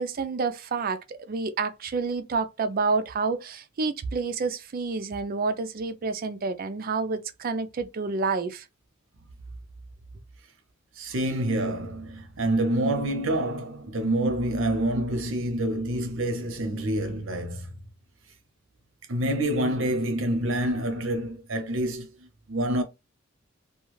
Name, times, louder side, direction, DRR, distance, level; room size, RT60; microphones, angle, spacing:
voice 1, 0.0-8.7, right 4 dB, 45° right, 0.4 m, -29 dB
voice 2, 11.0-17.7 19.1-22.2 22.5-22.8, right 1 dB, 65° right, 0.8 m, -27 dB
2.3 x 2.3 x 3.1 m
head